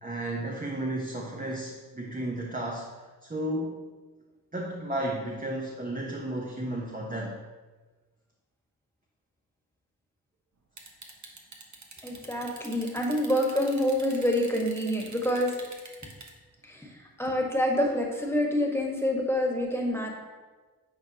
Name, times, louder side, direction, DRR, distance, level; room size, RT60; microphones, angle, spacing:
voice 1, 0.0-2.9 3.2-3.9 4.5-7.4, right 1 dB, 20° right, -1 dB, 1.0 m, -33 dB
sound 1, 10.8-16.3 17.2-17.3, right 3 dB, 45° right, 1.2 m, -45 dB
voice 2, 12.0-15.5 16.6-16.9 17.2-20.1, left 1 dB, 5° left, 0 dB, 1.6 m, -27 dB
9.7 x 4.3 x 3.0 m, 1.3 s
supercardioid pair, 40°, 39 cm